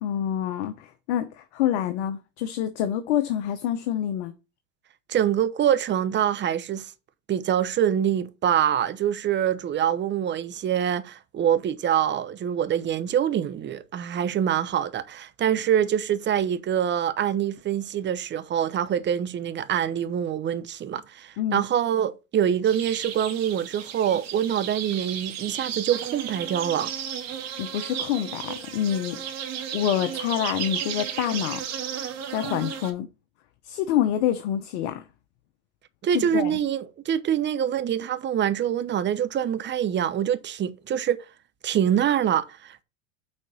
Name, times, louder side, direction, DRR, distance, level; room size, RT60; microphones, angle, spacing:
voice 1, 0.0-4.3 21.4-21.6 27.6-29.3 29.7-31.6 32.3-33.1 33.6-35.0 36.1-36.6, left 10 dB, 65° left, 1.0 m, -27 dB
voice 2, 5.1-6.9 7.3-26.9 36.0-41.2 41.6-42.8, right 9 dB, 30° right, 0.8 m, -25 dB
sound 1, 22.6-32.9, right 8 dB, 45° right, 2.5 m, -34 dB
6.3 x 4.4 x 6.0 m
hypercardioid pair, 95°, 37 cm